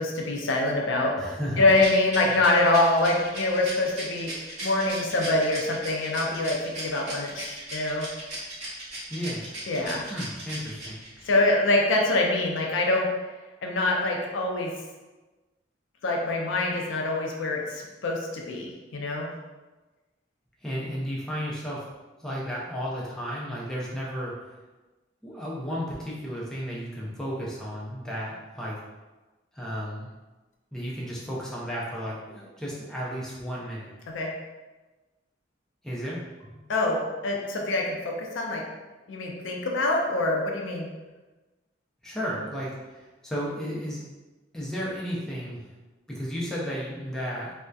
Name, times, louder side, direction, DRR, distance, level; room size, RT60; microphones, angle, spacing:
voice 1, 0.0-1.2 1.6-8.1 9.7-10.0 11.2-13.1 13.6-14.7 16.0-19.3 34.1-34.4 36.7-38.6 39.1-40.9, left 2 dB, 85° left, 0 dB, 0.4 m, -25 dB
voice 2, 1.2-1.7 2.3-2.4 9.1-9.6 10.1-11.0 20.6-21.8 22.2-24.5 25.2-28.8 29.5-30.1 30.7-33.9 35.8-36.7 42.0-44.1 44.5-45.7 46.1-47.5, equal, 5° left, -6 dB, 0.4 m, -33 dB
Rattle, 1.7-11.3, right 2 dB, 40° right, 1.0 m, -38 dB
2.6 x 2.1 x 2.2 m, 1.2 s
head